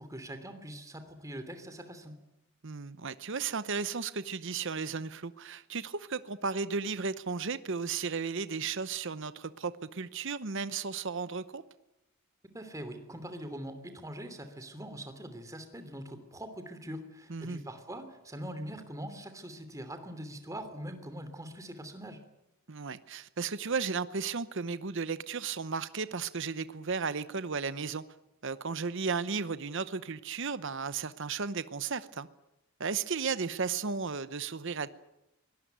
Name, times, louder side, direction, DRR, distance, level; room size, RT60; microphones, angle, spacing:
voice 1, 0.0-2.2 12.5-22.2, equal, 15° right, 8 dB, 3.0 m, -43 dB
voice 2, 2.6-11.6 17.3-17.6 22.7-28.0 28.4-32.3 32.8-34.9, right 5 dB, 55° right, 14 dB, 0.9 m, -34 dB
24.0 x 18.5 x 9.4 m, 0.88 s
head